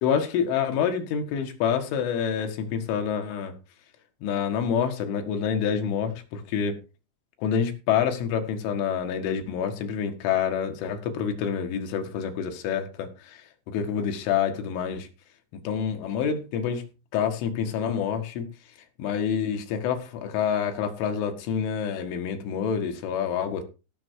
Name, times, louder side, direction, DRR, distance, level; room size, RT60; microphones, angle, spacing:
voice 1, 0.0-3.5 4.2-6.8 7.4-13.4 13.7-15.1 15.7-16.8 17.1-18.5 19.0-23.6, left 7 dB, 90° left, 4.2 m, -27 dB
15.5 x 6.6 x 4.7 m
omnidirectional pair, 5.4 m